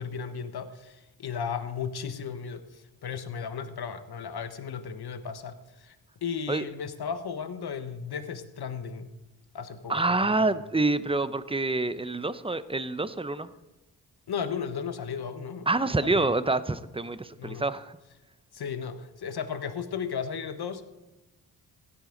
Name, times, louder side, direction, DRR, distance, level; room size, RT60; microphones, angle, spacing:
voice 1, 0.0-6.0 6.2-9.1 9.5-10.5 14.3-15.7 16.0-16.3 17.4-17.6 18.5-20.8, left 6 dB, 60° left, 10 dB, 1.3 m, -35 dB
voice 2, 9.9-13.5 15.7-17.9, right 2 dB, 10° right, 14 dB, 0.7 m, -27 dB
16.0 x 9.8 x 4.0 m, 1.0 s
supercardioid pair, 45°, 44 cm